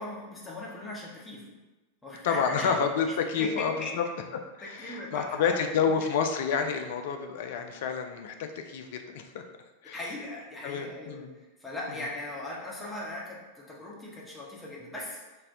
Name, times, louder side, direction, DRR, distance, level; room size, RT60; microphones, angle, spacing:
voice 1, 0.0-1.5 2.0-2.8 3.4-3.9 4.6-5.9 9.9-11.2 11.6-15.2, left 2 dB, 10° left, -4 dB, 0.7 m, -38 dB
voice 2, 2.2-4.0 4.6-9.4 9.8-10.0 10.6-11.3, left 6 dB, 55° left, 6 dB, 0.3 m, -29 dB
4.0 x 2.1 x 2.5 m, 1.1 s
figure-of-eight pair, 90°, 0 cm